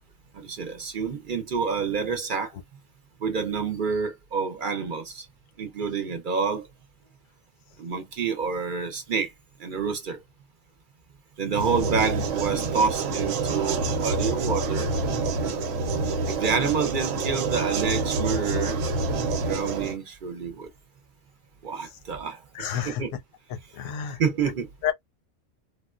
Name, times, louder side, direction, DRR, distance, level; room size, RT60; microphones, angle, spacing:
voice 1, 0.3-2.5 3.2-5.3 5.6-6.7 7.8-9.3 9.6-10.2 11.4-15.0 16.2-18.8 19.3-20.7 21.6-22.4 22.8-23.1 24.2-24.7, right 5 dB, 50° right, 0.7 m, -28 dB
sound 1, 11.5-20.0, right 3 dB, 85° right, 1.0 m, -27 dB
voice 2, 22.5-23.0 23.5-24.2 24.8-24.9, left 9 dB, 85° left, 1.0 m, -30 dB
3.5 x 2.2 x 2.3 m
omnidirectional pair, 1.3 m